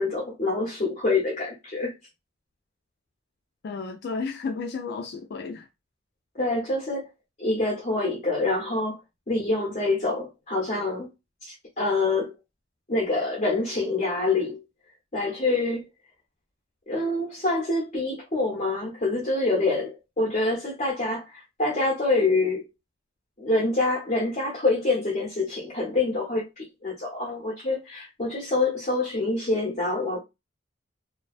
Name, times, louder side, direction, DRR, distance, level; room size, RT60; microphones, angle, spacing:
voice 1, 0.0-1.9 6.3-7.1 7.4-9.0 9.3-11.1 11.4-12.3 12.9-14.6 15.1-15.8 16.9-22.7 23.4-30.2, left 2 dB, 35° left, 0.7 m, -26 dB
voice 2, 3.6-5.7, left 4 dB, 55° left, 0.3 m, -32 dB
2.5 x 2.2 x 2.3 m
head